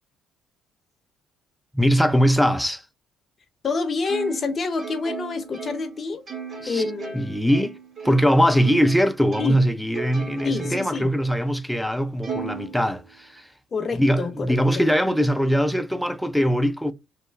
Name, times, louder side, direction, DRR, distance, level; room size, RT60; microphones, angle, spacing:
voice 1, 1.7-2.9 6.6-6.8 7.1-7.8 8.0-13.5 13.9-16.9, equal, ahead, 0.4 m, -21 dB
voice 2, 3.6-6.2 6.7-7.4 9.4-9.6 10.4-11.1 13.7-14.8, left 4 dB, 40° left, 0.6 m, -28 dB
Plucked string instrument, 4.0-9.0 9.3-11.0 11.5-11.6 12.2-13.4, right 6 dB, 45° right, 1.7 m, -36 dB
3.2 x 2.0 x 3.2 m
supercardioid pair, 80°, 0 cm